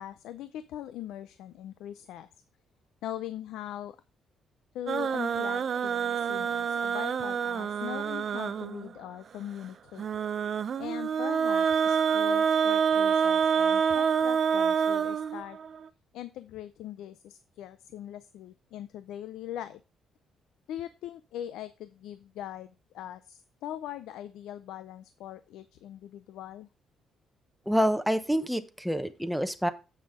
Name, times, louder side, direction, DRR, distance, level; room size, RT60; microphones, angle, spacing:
voice 1, 0.0-2.3 3.0-4.0 4.7-10.1 10.8-15.6 16.1-19.8 20.7-26.7, left 11 dB, 85° left, 13 dB, 0.5 m, -41 dB
sound 1, 4.9-8.9 10.0-15.8, right 7 dB, 55° right, 0.5 m, -27 dB
voice 2, 27.7-29.7, equal, ahead, 9 dB, 0.9 m, -27 dB
7.5 x 6.1 x 4.8 m, 0.31 s
cardioid pair, 90°, 0 cm